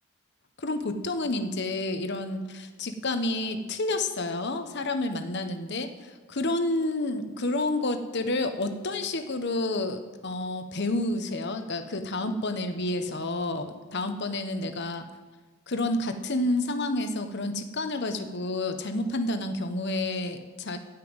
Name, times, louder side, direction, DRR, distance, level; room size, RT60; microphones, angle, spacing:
voice 1, 0.6-15.1 15.7-20.8, left 2 dB, 50° left, 8 dB, 1.0 m, -29 dB
14.5 x 5.8 x 8.8 m, 1.3 s
head